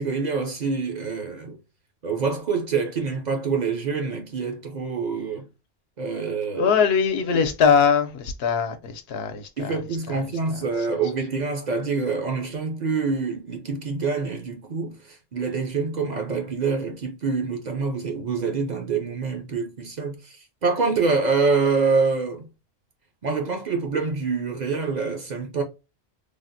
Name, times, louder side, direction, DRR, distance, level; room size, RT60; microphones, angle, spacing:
voice 1, 0.0-1.6 2.0-5.5 6.0-6.7 9.6-22.5 23.2-25.6, right 4 dB, 50° right, 0.6 m, -26 dB
voice 2, 6.5-9.8 10.1-10.2, left 6 dB, 75° left, 0.8 m, -22 dB
3.3 x 2.1 x 2.5 m
omnidirectional pair, 1.0 m